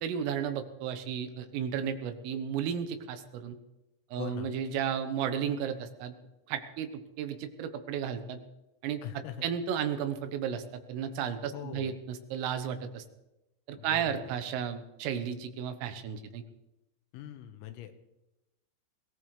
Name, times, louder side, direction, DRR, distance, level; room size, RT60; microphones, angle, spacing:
voice 1, 0.0-3.6 4.1-6.2 6.5-8.4 8.8-9.0 9.4-13.0 13.7-16.4, right 8 dB, 80° right, 8 dB, 3.7 m, -33 dB
voice 2, 4.2-4.6 9.0-9.5 11.5-12.0 13.8-14.3 17.1-17.9, left 10 dB, 85° left, 7 dB, 3.8 m, -42 dB
22.5 x 18.0 x 3.3 m, 0.97 s
omnidirectional pair, 5.9 m